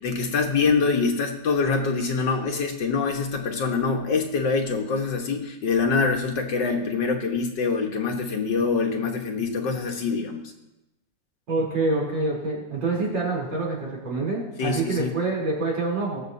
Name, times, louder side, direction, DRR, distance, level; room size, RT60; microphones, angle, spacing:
voice 1, 0.0-10.5 14.6-15.1, left 4 dB, 70° left, 2 dB, 1.9 m, -25 dB
voice 2, 11.5-16.2, right 3 dB, 85° right, -4 dB, 4.3 m, -26 dB
20.0 x 7.6 x 2.7 m, 0.93 s
omnidirectional pair, 2.0 m